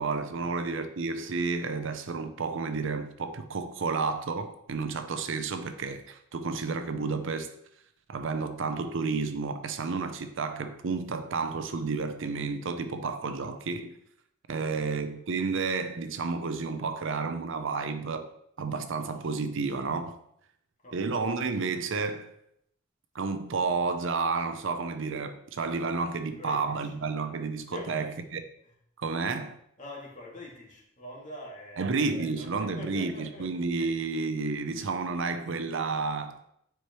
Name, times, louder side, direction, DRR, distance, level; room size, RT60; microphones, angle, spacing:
voice 1, 0.0-7.5 8.1-14.0 14.5-18.3 18.6-20.2 20.9-22.3 23.1-28.4 29.0-29.6 31.8-36.4, right 4 dB, 65° right, 0.6 m, -31 dB
voice 2, 14.5-15.0 20.8-21.1 26.3-26.9 27.7-28.1 29.8-33.5 33.8-33.9, left 1 dB, 40° left, 2.2 m, -45 dB
9.3 x 4.8 x 3.1 m
head